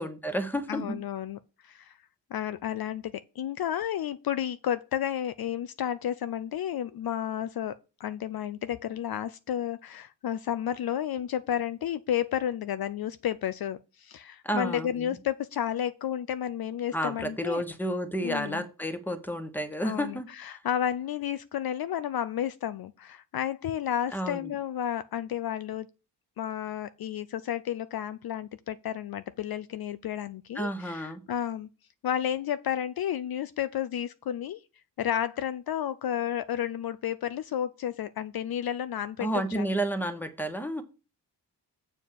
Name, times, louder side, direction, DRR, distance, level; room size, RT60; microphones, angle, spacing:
voice 1, 0.0-1.0 14.4-15.1 16.9-20.6 24.1-24.5 30.5-31.2 39.2-40.8, right 1 dB, 5° left, 1.1 m, -31 dB
voice 2, 0.7-2.0 2.3-17.6 18.2-18.6 19.8-25.9 26.4-31.7 32.0-34.6 35.0-39.6, left 10 dB, 60° left, 0.5 m, -32 dB
7.4 x 4.5 x 6.9 m
cardioid pair, 100°, 42 cm